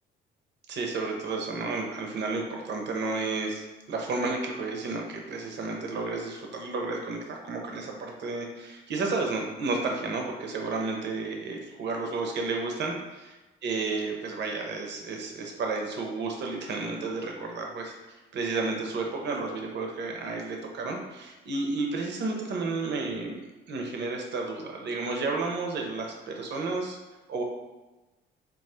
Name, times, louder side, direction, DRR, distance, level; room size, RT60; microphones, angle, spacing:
voice 1, 0.7-23.4 23.7-27.0 27.3-27.4, right 3 dB, 60° right, 1 dB, 0.7 m, -32 dB
2.8 x 2.4 x 4.2 m, 1.1 s
cardioid pair, 90°, 20 cm